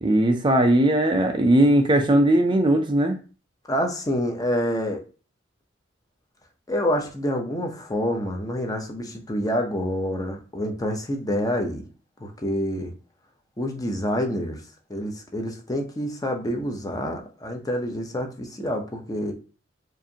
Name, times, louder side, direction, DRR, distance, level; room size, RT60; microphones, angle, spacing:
voice 1, 0.0-3.2, right 1 dB, 25° right, 0.4 m, -19 dB
voice 2, 3.7-5.0 6.7-11.8 12.2-12.9 13.6-14.6 14.9-19.3, equal, 20° left, 0.7 m, -27 dB
4.8 x 2.6 x 2.7 m
head